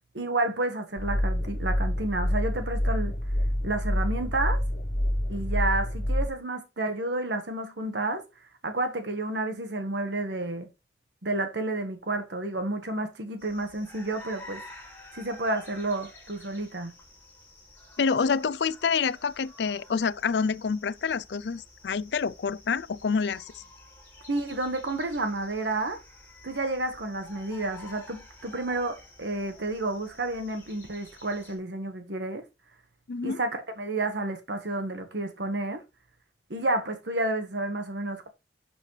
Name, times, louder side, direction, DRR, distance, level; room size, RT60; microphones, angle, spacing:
voice 1, 0.1-3.1 3.6-4.6 5.3-8.2 8.6-10.7 11.2-14.6 15.1-16.9 24.3-26.0 26.4-32.4 33.2-35.8 36.5-38.3, right 2 dB, 85° right, 1.5 m, -30 dB
sound 1, 1.0-6.3, left 1 dB, 50° left, 1.1 m, -27 dB
sound 2, 13.4-31.6, left 1 dB, 10° left, 4.9 m, -50 dB
voice 2, 18.0-23.6 33.1-33.4, left 5 dB, 75° left, 0.5 m, -27 dB
11.5 x 6.2 x 3.3 m
head